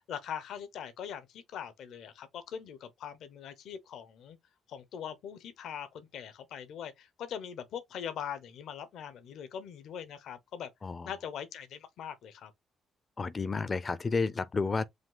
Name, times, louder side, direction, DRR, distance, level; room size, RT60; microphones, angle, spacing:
voice 1, 0.1-4.4 4.7-10.7 11.0-12.5, left 8 dB, 75° left, 0.8 m, -42 dB
voice 2, 13.2-14.9, left 4 dB, 35° left, 0.5 m, -31 dB
5.1 x 2.3 x 3.8 m
cardioid pair, 90°, 0 cm